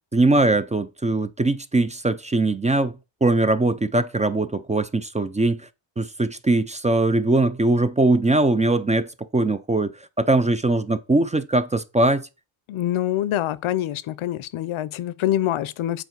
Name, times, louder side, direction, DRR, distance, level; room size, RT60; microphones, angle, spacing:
voice 1, 0.1-5.6 6.0-12.3, right 2 dB, 15° right, 0.3 m, -21 dB
voice 2, 12.7-16.0, left 12 dB, 75° left, 0.6 m, -25 dB
7.9 x 4.4 x 4.6 m
wide cardioid pair, 130°, 49 cm